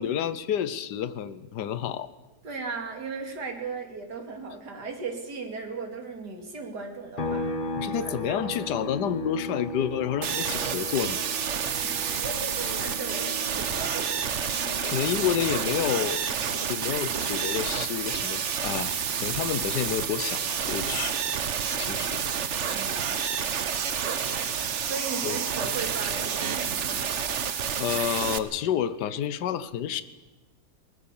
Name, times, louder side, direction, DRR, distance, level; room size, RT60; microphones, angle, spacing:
voice 1, 0.0-2.1 7.8-11.2 14.8-16.2 16.7-21.2 21.7-22.2 25.2-25.4 27.8-30.0, left 9 dB, 80° left, 14 dB, 1.5 m, -29 dB
voice 2, 2.4-8.1 8.4-8.6 11.6-14.1 21.9-22.3 22.7-23.1 24.0-24.5 24.8-27.0, right 4 dB, 70° right, 3 dB, 3.2 m, -37 dB
sound 1, 7.2-20.7 21.1-23.3, left 1 dB, 35° left, 1.1 m, -39 dB
sound 2, 10.2-28.4, right 7 dB, 50° right, 1.2 m, -29 dB
21.0 x 19.5 x 7.2 m, 1.2 s
omnidirectional pair, 1.8 m